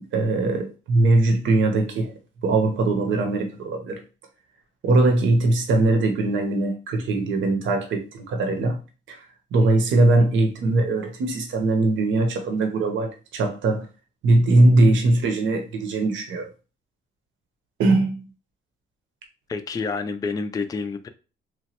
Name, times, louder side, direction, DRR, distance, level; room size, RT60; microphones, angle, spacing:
voice 1, 0.1-2.1 2.4-4.0 4.8-8.8 9.1-9.3 9.5-13.9 14.2-16.5 17.8-18.2, right 2 dB, 70° right, 0.7 m, -20 dB
voice 2, 19.5-21.1, left 4 dB, 20° left, 0.3 m, -28 dB
3.0 x 2.2 x 2.9 m
cardioid pair, 90°, 20 cm